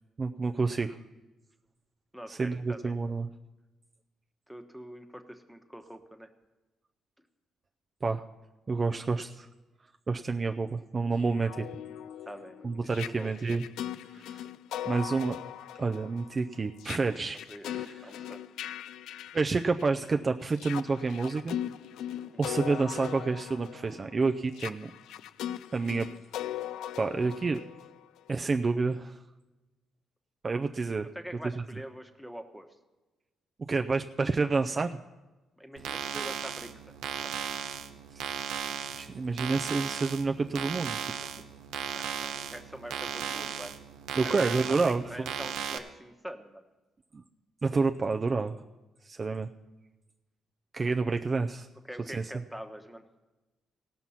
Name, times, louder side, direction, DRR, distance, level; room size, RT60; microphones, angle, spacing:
voice 1, 0.2-1.0 2.3-3.3 8.0-8.2 8.7-9.5 10.1-11.7 12.6-13.7 14.1-14.4 14.9-15.4 15.8-17.4 17.7-18.3 19.3-21.6 22.4-24.9 25.7-26.1 27.0-27.6 28.3-29.2 30.4-31.1 33.7-35.0 38.2-38.3 38.9-41.3 44.2-45.3 47.1-47.2 47.6-48.6 49.0-49.5 50.7-51.7 52.1-52.3, right 4 dB, 35° right, 5 dB, 0.4 m, -29 dB
voice 2, 2.1-2.9 4.5-6.3 12.3-13.6 17.0-18.4 22.2-22.5 31.1-32.7 35.6-37.3 41.9-43.8 44.2-46.6 51.9-53.0, equal, ahead, 5 dB, 1.1 m, -45 dB
sound 1, 11.2-20.1 20.5-28.3, left 11 dB, 85° left, 0.3 m, -40 dB
sound 2, 35.8-45.8, right 8 dB, 90° right, 0.8 m, -36 dB
18.0 x 6.0 x 5.7 m, 1.1 s
cardioid pair, 90°, 0 cm